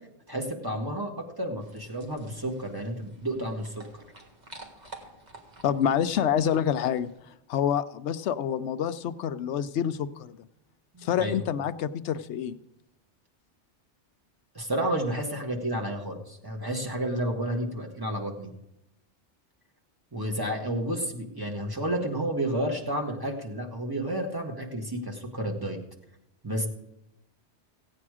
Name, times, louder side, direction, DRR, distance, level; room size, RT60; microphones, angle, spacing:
voice 1, 0.3-4.0 10.9-11.4 14.6-18.5 20.1-25.8 26.4-26.7, right 1 dB, 20° right, 1 dB, 1.6 m, -31 dB
sound 1, 1.6-7.2, right 2 dB, 40° right, 1.7 m, -50 dB
voice 2, 5.6-7.1 7.5-10.3 11.0-12.6, left 9 dB, 75° left, 12 dB, 0.9 m, -27 dB
16.0 x 8.6 x 4.9 m, 0.88 s
omnidirectional pair, 1.2 m